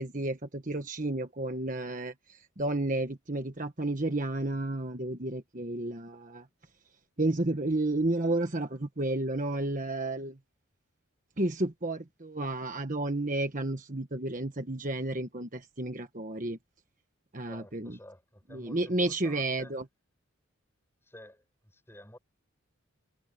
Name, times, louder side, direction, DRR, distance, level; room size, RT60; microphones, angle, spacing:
voice 1, 0.0-2.1 2.6-6.4 7.2-10.4 11.4-16.6 17.3-18.0 18.5-19.8, right 2 dB, 40° right, 1.4 m, -31 dB
voice 2, 17.4-19.8 21.0-22.2, left 1 dB, 10° left, 7.3 m, -52 dB
head